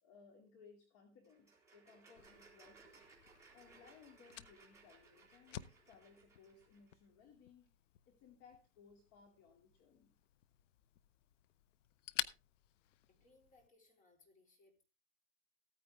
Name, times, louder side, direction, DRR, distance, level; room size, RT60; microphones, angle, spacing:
voice 1, 0.0-3.0 3.5-7.7 8.1-10.1, left 5 dB, 40° left, 3 dB, 2.5 m, -63 dB
sound 1, 1.2-6.9, right 4 dB, 10° right, 3.4 m, -64 dB
Fire, 2.2-13.7, left 13 dB, 70° left, 0.8 m, -50 dB
voice 2, 13.1-14.8, left 2 dB, 20° left, 2 dB, 3.8 m, -69 dB
15.0 x 9.4 x 3.4 m, 0.30 s
hypercardioid pair, 140°, 39 cm